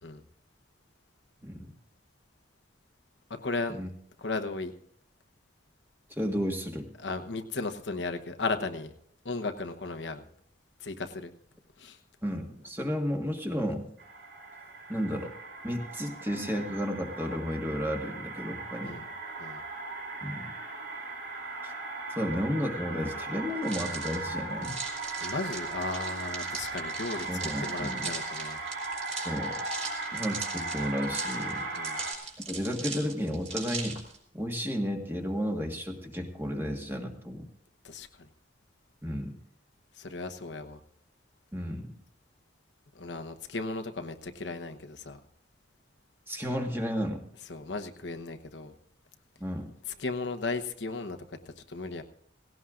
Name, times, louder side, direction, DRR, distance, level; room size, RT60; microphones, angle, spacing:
voice 1, 3.3-3.8 4.2-4.7 7.0-8.9 9.2-10.2 10.8-11.3 11.8-12.0 18.8-19.1 19.4-19.6 25.2-27.3 27.6-28.6 31.8-32.0 37.8-38.3 40.0-40.8 42.9-45.2 47.5-48.7 49.9-51.2 51.7-52.0, left 3 dB, 75° left, 7 dB, 1.0 m, -35 dB
voice 2, 6.1-6.9 12.2-13.9 14.9-15.3 15.6-19.0 20.2-20.5 21.6-21.7 22.1-24.8 27.3-28.1 29.2-29.6 30.1-31.7 32.5-34.0 34.3-37.4 39.0-39.3 41.5-41.9 46.3-47.3 49.4-49.7, equal, 10° right, 2 dB, 1.6 m, -32 dB
sound 1, 14.0-32.1, right 3 dB, 75° right, 3.2 m, -37 dB
sound 2, 23.6-34.2, right 4 dB, 40° right, 3.3 m, -40 dB
18.0 x 17.0 x 2.5 m, 0.69 s
head